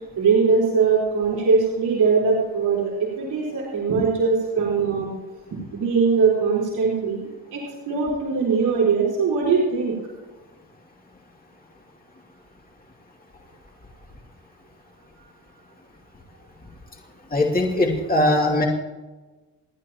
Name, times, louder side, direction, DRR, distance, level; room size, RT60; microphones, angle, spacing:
voice 1, 0.2-5.1 5.7-9.9, right 5 dB, 80° right, -5 dB, 4.3 m, -21 dB
voice 2, 17.3-18.7, left 1 dB, 25° left, -1 dB, 2.6 m, -20 dB
29.5 x 9.8 x 3.0 m, 1.2 s
cardioid pair, 75°, 37 cm